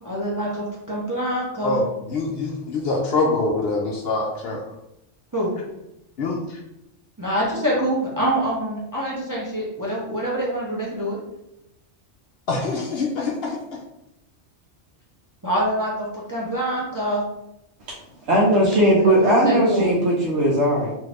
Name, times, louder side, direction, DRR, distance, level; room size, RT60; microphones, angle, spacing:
voice 1, 0.0-1.8 5.3-5.5 7.2-11.2 15.4-17.2 19.0-19.1 19.4-20.0, right 1 dB, 25° right, -5 dB, 0.4 m, -25 dB
voice 2, 1.6-4.6 6.2-6.6 12.5-13.6, left 3 dB, 65° left, -2 dB, 0.7 m, -24 dB
voice 3, 18.3-20.9, right 1 dB, 75° right, -4 dB, 0.9 m, -18 dB
2.7 x 2.5 x 3.2 m, 0.87 s
omnidirectional pair, 1.2 m